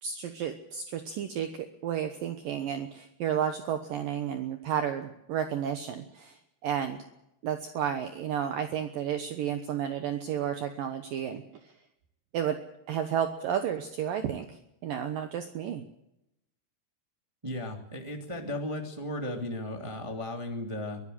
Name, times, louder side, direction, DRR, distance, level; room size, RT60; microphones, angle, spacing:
voice 1, 0.0-7.0 7.4-11.4 12.3-12.6 12.9-14.5 14.8-15.8, right 9 dB, 70° right, 7 dB, 2.5 m, -32 dB
voice 2, 17.4-21.0, left 1 dB, 15° right, 2 dB, 1.0 m, -35 dB
23.5 x 15.0 x 7.8 m, 0.85 s
omnidirectional pair, 4.9 m